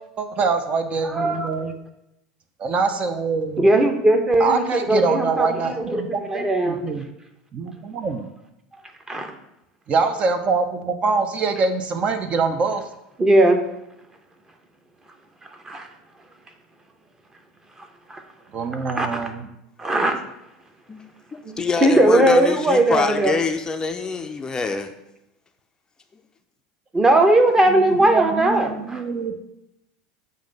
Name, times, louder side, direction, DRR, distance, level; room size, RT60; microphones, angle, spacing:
voice 1, 0.2-1.7 2.6-3.7 4.4-7.0 7.5-8.3 9.9-12.8 18.5-19.5 27.7-29.4, right 4 dB, 40° right, 8 dB, 0.6 m, -24 dB
voice 2, 1.0-1.5 3.6-6.0 6.3-6.8 9.1-9.3 13.2-13.6 15.6-15.9 18.1-18.2 18.7-19.3 19.8-20.2 21.4-23.3 26.9-29.0, right 1 dB, 15° right, 6 dB, 0.8 m, -19 dB
voice 3, 21.3-24.9, left 5 dB, 20° left, 7 dB, 0.4 m, -25 dB
7.2 x 2.6 x 5.2 m, 0.87 s
supercardioid pair, 100°, 3 cm